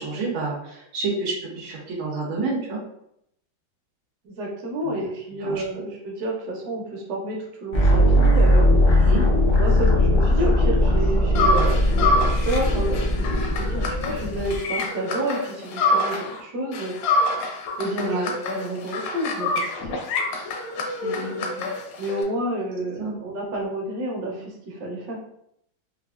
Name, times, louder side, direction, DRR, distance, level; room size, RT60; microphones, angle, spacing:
voice 1, 0.0-2.8 4.8-5.1 5.4-5.6 8.9-9.2 18.0-18.3 21.0-21.7 23.0-23.1, right 3 dB, 85° right, -4 dB, 1.6 m, -29 dB
voice 2, 4.2-8.7 9.6-17.0 17.8-18.2 18.5-20.0 22.0-25.2, right 1 dB, 65° right, -1 dB, 1.3 m, -29 dB
sound 1, 7.7-14.6, left 1 dB, 55° left, 0.6 m, -19 dB
sound 2, 11.3-16.4 16.7-22.2, left 2 dB, 80° left, 1.3 m, -26 dB
4.1 x 2.4 x 2.4 m, 0.75 s
omnidirectional pair, 2.2 m